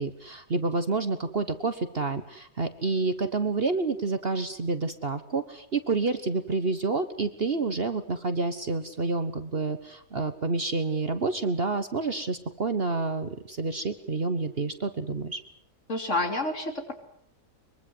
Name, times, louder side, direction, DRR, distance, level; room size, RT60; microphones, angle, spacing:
voice 1, 0.0-15.4, right 3 dB, 40° right, 10 dB, 1.3 m, -29 dB
voice 2, 15.9-16.9, left 2 dB, 50° left, 5 dB, 3.4 m, -29 dB
23.0 x 23.0 x 7.8 m, 0.65 s
omnidirectional pair, 1.6 m